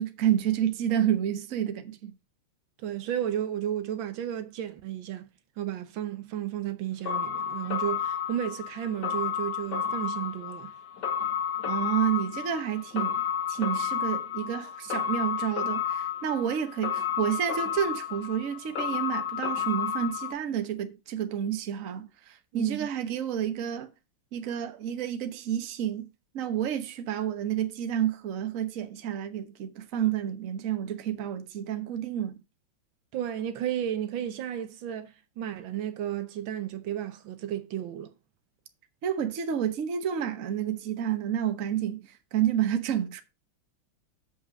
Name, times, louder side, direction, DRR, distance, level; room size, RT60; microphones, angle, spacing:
voice 1, 0.0-2.1 11.6-13.2 13.5-23.9 24.3-26.1 26.3-32.4 39.0-43.2, right 10 dB, 45° right, 1.3 m, -30 dB
voice 2, 2.8-5.3 5.6-10.7 22.5-22.9 33.1-38.1, right 10 dB, 75° right, 1.5 m, -33 dB
sound 1, 7.0-20.3, left 8 dB, 60° left, 2.1 m, -31 dB
7.4 x 5.5 x 6.4 m
omnidirectional pair, 2.2 m